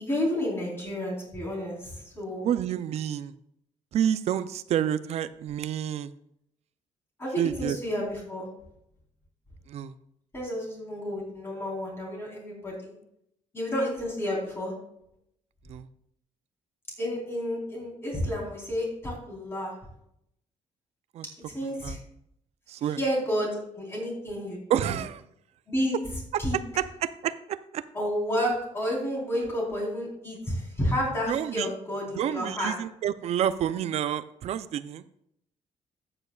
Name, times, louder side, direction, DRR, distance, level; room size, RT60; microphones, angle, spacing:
voice 1, 0.0-2.4 7.2-8.5 10.3-12.9 13.5-14.7 17.0-19.7 21.5-22.0 23.0-24.9 25.7-26.0 26.4-26.6 27.9-32.7, equal, 20° left, -3 dB, 4.0 m, -31 dB
voice 2, 2.4-3.3 3.9-6.1 7.4-7.8 9.7-9.9 15.7-15.9 21.1-21.3 21.8-22.0 22.7-23.0 24.7-25.2 26.3-26.4 26.8-27.8 29.3-29.5 31.3-31.7 32.2-35.0, right 10 dB, 60° right, 14 dB, 0.5 m, -29 dB
13.0 x 8.9 x 2.4 m, 0.75 s
cardioid pair, 145°, 12 cm